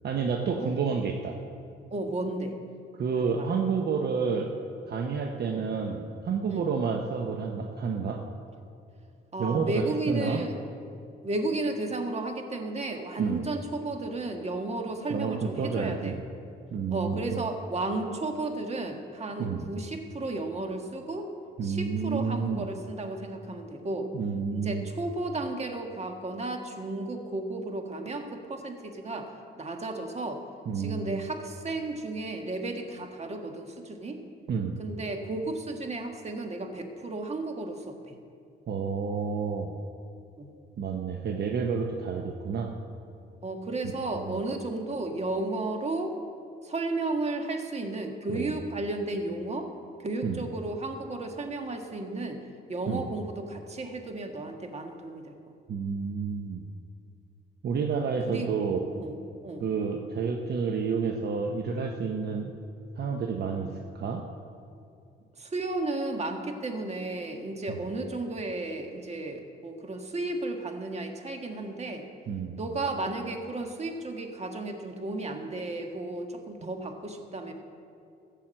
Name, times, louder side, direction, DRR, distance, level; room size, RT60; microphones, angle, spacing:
voice 1, 0.0-1.4 2.9-4.5 4.9-8.2 9.4-10.4 13.2-13.5 15.1-16.2 16.7-17.4 19.4-19.7 21.6-22.7 24.1-24.9 30.7-31.3 34.5-34.8 38.7-39.7 40.8-42.7 44.1-44.4 48.3-48.6 50.2-50.4 52.9-53.1 55.7-56.6 57.6-58.9 59.6-62.5 63.0-63.7 63.9-64.2 67.7-67.8 72.3-72.6, right 5 dB, 55° right, 3 dB, 1.0 m, -30 dB
voice 2, 1.9-2.6 3.2-3.3 5.6-5.7 6.5-6.6 9.3-10.6 11.2-16.2 16.9-21.3 21.6-24.1 24.5-29.3 29.6-30.4 30.7-34.2 34.8-38.2 40.4-40.5 43.4-46.1 46.6-49.7 50.0-52.4 52.7-55.3 58.3-58.5 58.9-59.1 59.4-59.6 65.4-72.0 72.6-77.5, right 2 dB, 35° right, 4 dB, 1.7 m, -33 dB
15.0 x 7.5 x 7.6 m, 2.5 s
cardioid pair, 90°, 20 cm